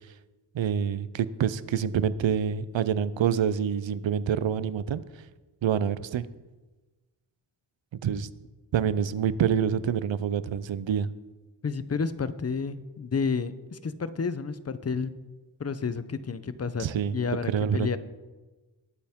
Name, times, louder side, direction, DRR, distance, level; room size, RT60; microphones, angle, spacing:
voice 1, 0.5-5.0 5.6-6.3 8.0-8.3 8.7-11.1 16.8-17.2 17.5-18.0, right 8 dB, 80° right, 16 dB, 0.7 m, -26 dB
voice 2, 11.6-15.1 15.6-18.0, left 5 dB, 35° left, 14 dB, 0.7 m, -30 dB
20.5 x 8.8 x 3.7 m, 1.2 s
wide cardioid pair, 85°, 45 cm